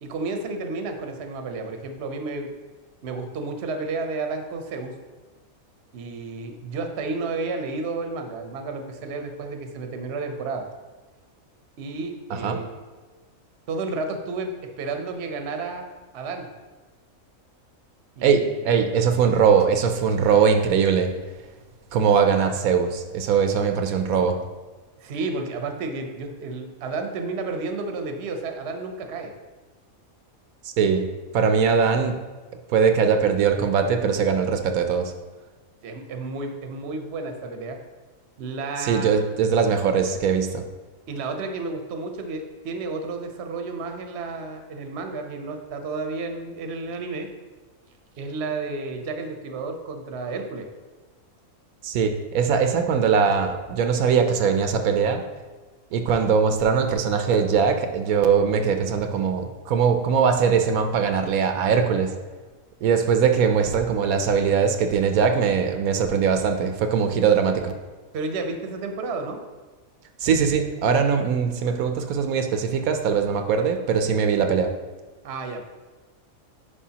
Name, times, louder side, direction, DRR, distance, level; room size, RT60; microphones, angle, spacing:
voice 1, 0.0-2.5 3.0-4.9 5.9-10.6 11.8-12.7 13.7-14.5 14.8-15.8 16.1-16.5 18.2-18.6 25.0-29.3 35.8-37.8 38.4-39.2 41.1-47.3 48.2-50.7 68.1-69.4 75.2-75.6, right 3 dB, 55° right, 5 dB, 0.9 m, -31 dB
voice 2, 18.2-21.1 21.9-24.4 30.6-31.1 31.3-32.2 32.7-35.1 38.8-40.6 51.8-55.2 55.9-62.1 62.8-67.7 70.2-74.7, right 6 dB, 80° right, 6 dB, 1.1 m, -21 dB
10.0 x 4.9 x 2.8 m, 1.3 s
omnidirectional pair, 1.5 m